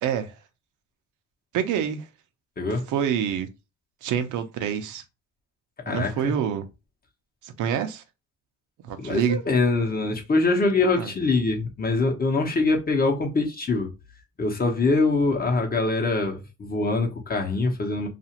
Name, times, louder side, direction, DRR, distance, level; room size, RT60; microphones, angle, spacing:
voice 1, 0.0-0.3 1.5-2.0 2.9-3.5 4.0-5.0 5.9-6.7 7.4-8.0 8.8-9.4 11.0-11.1, right 8 dB, 75° right, 0.6 m, -26 dB
voice 2, 5.9-6.3 9.0-13.9 14.4-18.1, left 3 dB, 30° left, 0.8 m, -24 dB
2.5 x 2.4 x 2.8 m
cardioid pair, 90°, 30 cm